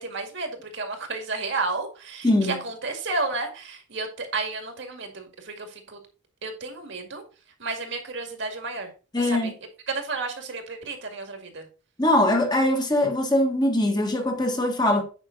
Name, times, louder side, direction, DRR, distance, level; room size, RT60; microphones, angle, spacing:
voice 1, 0.0-5.7 6.4-7.2 7.6-8.9 9.4-9.5 9.9-11.6, right 3 dB, 60° right, 2.1 m, -32 dB
voice 2, 2.2-2.6 9.1-9.5 12.0-15.0, left 1 dB, 20° left, 1.7 m, -22 dB
9.1 x 5.8 x 4.0 m
head